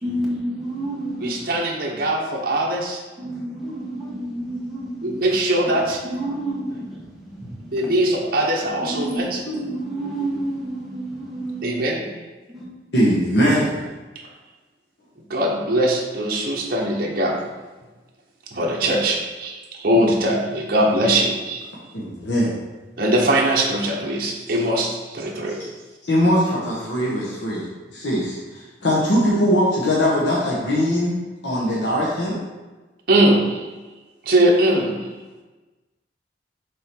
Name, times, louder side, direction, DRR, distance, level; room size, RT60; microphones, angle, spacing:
voice 1, 0.0-1.4 3.2-5.2 6.1-7.9 9.0-11.8 12.5-12.7, right 1 dB, ahead, -7 dB, 1.5 m, -29 dB
voice 2, 1.2-3.0 5.0-6.0 7.7-9.4 11.6-12.0 15.3-17.4 18.5-21.6 23.0-25.6 33.1-33.7 34.2-35.1, right 1 dB, 55° right, -2 dB, 1.0 m, -21 dB
voice 3, 12.9-13.8 19.9-20.1 21.9-22.6 25.5-25.6 26.0-27.6 27.9-31.2 31.4-32.4, equal, 85° left, -6 dB, 1.3 m, -21 dB
6.3 x 3.9 x 4.6 m, 1.2 s
head